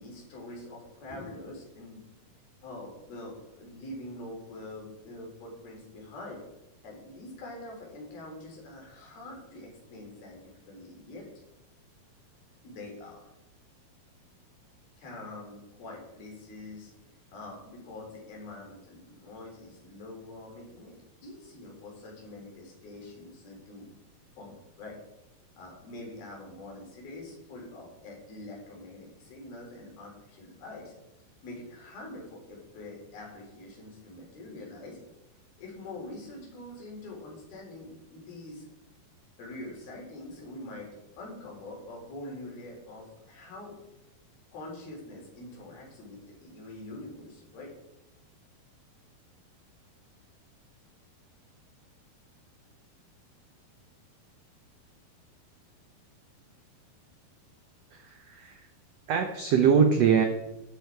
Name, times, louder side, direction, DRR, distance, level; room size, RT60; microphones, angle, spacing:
voice 1, 0.0-2.0 2.6-6.4 6.8-11.3 12.6-13.3 15.0-16.9 17.3-23.9 24.3-25.0 25.6-30.9 31.4-35.0 35.6-38.7 39.4-40.9 41.2-43.8 44.5-47.7, left 2 dB, 75° left, -1 dB, 5.8 m, -44 dB
voice 2, 57.9-58.7 59.1-60.3, right 7 dB, 85° right, 6 dB, 1.4 m, -23 dB
12.5 x 11.5 x 4.7 m, 0.90 s
omnidirectional pair, 4.4 m